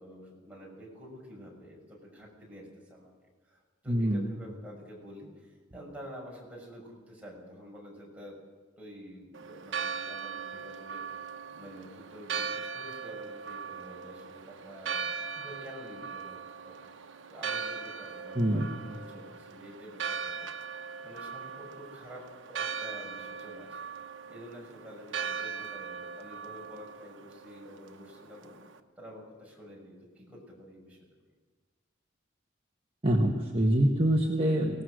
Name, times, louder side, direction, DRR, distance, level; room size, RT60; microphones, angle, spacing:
voice 1, 0.0-3.1 3.5-8.4 8.8-16.4 16.6-20.7 21.0-23.9 24.3-28.5 29.0-31.1, equal, 5° right, -3 dB, 6.3 m, -49 dB
voice 2, 3.9-4.3 18.3-18.7 33.0-34.8, right 1 dB, 30° right, 1 dB, 1.4 m, -25 dB
Church bell, 9.3-28.8, right 6 dB, 80° right, 1.1 m, -39 dB
24.5 x 18.5 x 6.4 m, 1.4 s
head